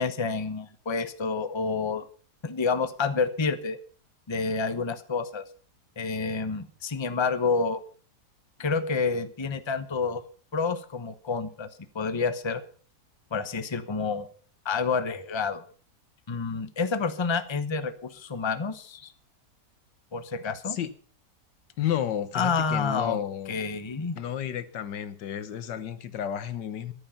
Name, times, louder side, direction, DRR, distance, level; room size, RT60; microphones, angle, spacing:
voice 1, 0.0-2.0 2.4-3.8 4.3-5.5 6.0-7.8 8.6-10.2 10.5-11.7 11.9-12.6 13.3-14.3 14.6-15.6 16.3-19.1 20.1-20.8 22.3-23.2 23.5-24.2, left 4 dB, 20° left, 11 dB, 0.9 m, -28 dB
voice 2, 21.8-23.5 24.2-26.9, left 10 dB, 90° left, 13 dB, 1.7 m, -32 dB
14.0 x 11.0 x 5.7 m, 0.43 s
omnidirectional pair, 1.8 m